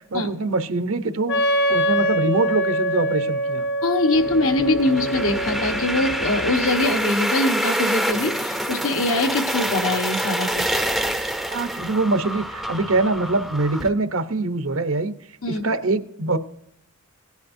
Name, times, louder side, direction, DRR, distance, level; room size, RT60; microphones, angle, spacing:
voice 1, 0.1-1.4 1.7-3.7 11.5-15.1 15.5-16.4, right 2 dB, 75° right, 10 dB, 0.9 m, -23 dB
Wind instrument woodwind instrument, 1.3-6.9, right 1 dB, 55° left, 0.8 m, -25 dB
voice 2, 3.8-10.8 15.4-15.6, left 2 dB, 75° left, 5 dB, 1.3 m, -23 dB
sound 1, 4.1-13.9, right 1 dB, ahead, 0.5 m, -26 dB
17.5 x 10.5 x 2.7 m, 0.75 s
head